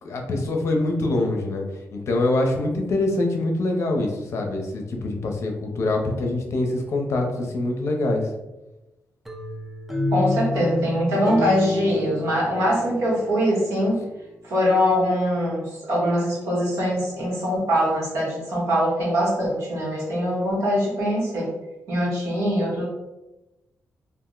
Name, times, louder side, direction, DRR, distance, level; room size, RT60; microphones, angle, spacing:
voice 1, 0.0-8.3, left 2 dB, 60° left, 2 dB, 0.6 m, -24 dB
sound 1, 9.3-14.2, left 2 dB, 5° right, 0.4 m, -29 dB
voice 2, 10.1-14.0 14.4-21.5 21.9-22.8, equal, 80° right, -5 dB, 1.2 m, -23 dB
2.5 x 2.0 x 3.7 m, 1.0 s
cardioid pair, 120°, 5 cm